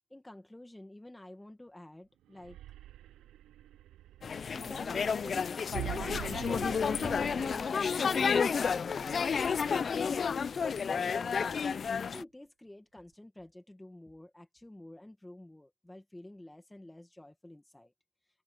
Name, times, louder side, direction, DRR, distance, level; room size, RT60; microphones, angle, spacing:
voice 1, 0.1-2.6 4.5-9.2 9.6-10.6 10.9-11.7 12.0-17.9, left 1 dB, 10° left, 1.8 m, -50 dB
sound 1, 2.3-10.4, right 13 dB, 80° right, 0.5 m, -46 dB
sound 2, 4.2-12.2, left 6 dB, 45° left, 0.5 m, -31 dB
cardioid pair, 90°, 0 cm